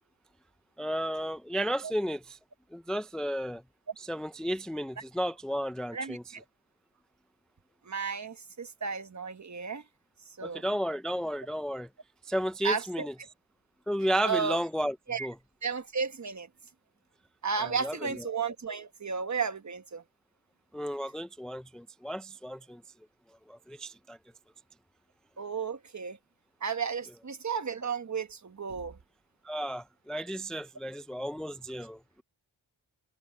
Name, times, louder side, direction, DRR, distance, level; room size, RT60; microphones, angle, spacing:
voice 1, 0.8-2.4 2.7-3.6 4.0-6.3 10.4-11.9 12.2-13.1 13.9-14.9 15.2-15.3 17.6-18.3 20.7-22.8 23.5-24.2 29.4-32.2, equal, ahead, 0.5 m, -33 dB
voice 2, 5.9-6.4 7.9-9.8 10.4-10.6 12.6-13.1 14.2-14.6 15.1-15.3 15.6-16.5 17.4-20.0 25.4-26.2 26.6-29.0, right 5 dB, 40° right, 1.3 m, -33 dB
wide cardioid pair, 110°, 45 cm